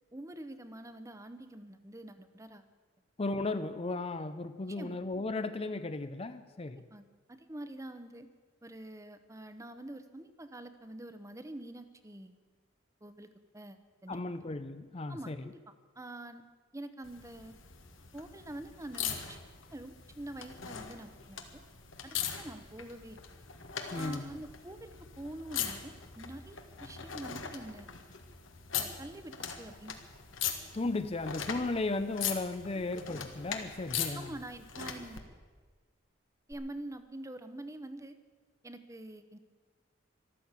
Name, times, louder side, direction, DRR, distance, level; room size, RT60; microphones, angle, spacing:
voice 1, 0.1-2.6 4.8-5.0 6.9-8.3 8.6-12.3 13.0-14.4 15.1-15.6 16.0-16.4 16.7-17.5 18.1-19.4 19.7-21.6 22.0-23.2 23.9-27.9 28.8-30.0 32.7-32.9 33.2-33.3 34.1-35.2 36.5-38.2 38.6-39.4, right 1 dB, 15° right, 10 dB, 0.9 m, -46 dB
voice 2, 3.2-6.8 14.1-15.5 23.9-24.4 30.7-34.3, left 2 dB, 30° left, 11 dB, 0.5 m, -35 dB
sound 1, 17.0-35.2 36.5-36.6, left 8 dB, 80° left, 1.6 m, -41 dB
13.5 x 12.5 x 8.2 m, 1.5 s
head